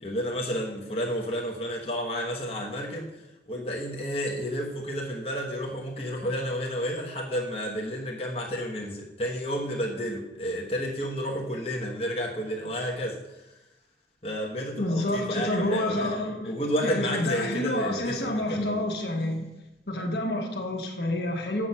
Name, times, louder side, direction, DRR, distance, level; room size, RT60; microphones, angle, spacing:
voice 1, 0.0-13.5 14.2-18.8, equal, 35° left, -2 dB, 1.1 m, -31 dB
voice 2, 14.8-16.5 16.8-19.5 19.9-21.7, left 1 dB, 65° left, 1 dB, 1.4 m, -28 dB
7.5 x 7.0 x 5.6 m, 0.95 s
head